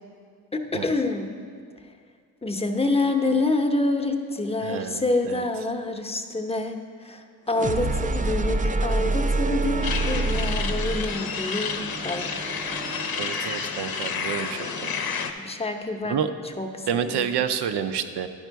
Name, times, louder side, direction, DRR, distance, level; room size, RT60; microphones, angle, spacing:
voice 1, 0.5-1.3 2.4-12.3 15.3-16.2 16.6-17.3, left 2 dB, 15° left, 5 dB, 0.7 m, -27 dB
voice 2, 4.6-5.4 13.2-14.9 16.0-16.3 16.9-18.3, right 8 dB, 85° right, 9 dB, 0.6 m, -29 dB
sound 1, 7.5-13.4, right 2 dB, 20° right, 0.3 m, -27 dB
sound 2, 9.8-15.3, left 6 dB, 65° left, 0.7 m, -30 dB
11.0 x 5.0 x 4.6 m, 2.2 s
cardioid pair, 75°, 39 cm